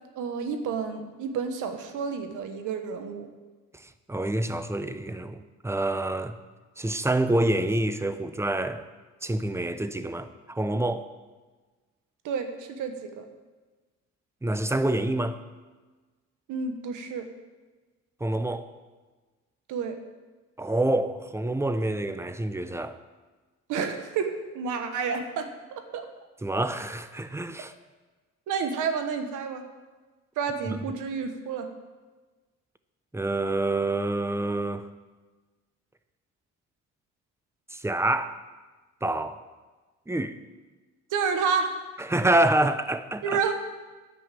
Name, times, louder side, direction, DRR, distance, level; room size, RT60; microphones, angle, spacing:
voice 1, 0.2-3.3 12.2-13.2 16.5-17.3 19.7-20.0 23.7-25.5 25.9-26.1 28.5-29.6 30.4-31.7 41.1-41.7 43.2-43.5, right 6 dB, 85° right, 1.2 m, -30 dB
voice 2, 3.8-6.4 6.8-8.8 9.2-11.1 14.4-15.4 18.2-18.7 20.6-23.0 26.4-27.7 30.7-30.8 33.1-34.9 37.7-38.4 39.0-39.4 40.1-40.4 42.0-43.4, right 1 dB, 10° right, 0.6 m, -27 dB
10.0 x 5.5 x 7.4 m
cardioid pair, 90°, 30 cm